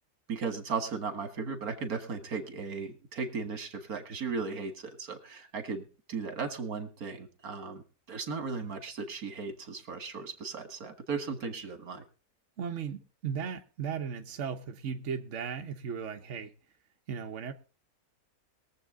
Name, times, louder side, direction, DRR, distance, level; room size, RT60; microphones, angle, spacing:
voice 1, 0.3-12.0, right 5 dB, 80° right, 2.2 m, -36 dB
voice 2, 12.6-16.5 17.1-17.5, right 7 dB, 55° right, 1.3 m, -36 dB
21.5 x 7.5 x 3.7 m
omnidirectional pair, 1.5 m